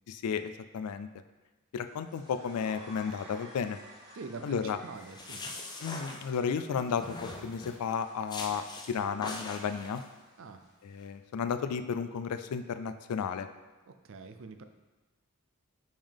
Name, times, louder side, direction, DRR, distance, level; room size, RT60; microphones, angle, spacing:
voice 1, 0.1-1.1 1.7-3.8 4.4-4.8 5.8-10.0 10.8-13.5, left 6 dB, 85° left, 11 dB, 0.3 m, -33 dB
sound 1, 1.8-11.2, equal, 20° right, 1.0 m, -55 dB
voice 2, 4.1-5.5 10.4-10.6 13.9-14.6, right 4 dB, 60° right, 8 dB, 0.4 m, -44 dB
sound 2, 5.0-6.6 7.0-7.8 8.3-8.9 9.2-10.0, left 2 dB, 20° left, 0.5 m, -42 dB
5.4 x 5.3 x 3.4 m, 1.2 s
head